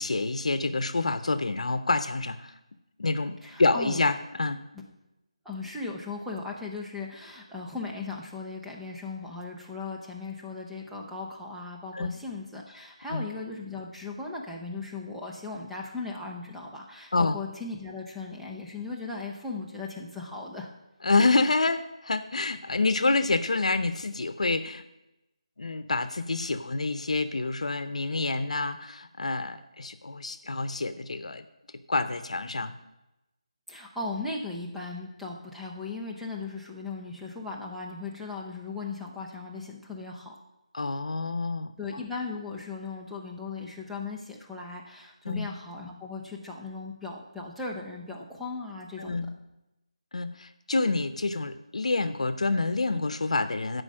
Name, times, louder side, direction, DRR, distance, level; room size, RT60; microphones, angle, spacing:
voice 1, 0.0-2.5 3.0-4.6 11.9-12.2 13.1-13.2 17.1-17.4 21.0-24.8 25.6-31.4 31.9-32.8 40.7-42.0 45.2-45.5 49.0-49.3 50.1-53.8, left 3 dB, 75° left, 12 dB, 0.7 m, -27 dB
voice 2, 3.4-4.0 5.4-20.7 33.7-40.4 41.8-49.3, left 3 dB, ahead, -3 dB, 0.5 m, -37 dB
9.8 x 5.2 x 7.6 m, 0.94 s
figure-of-eight pair, 175°, 4 cm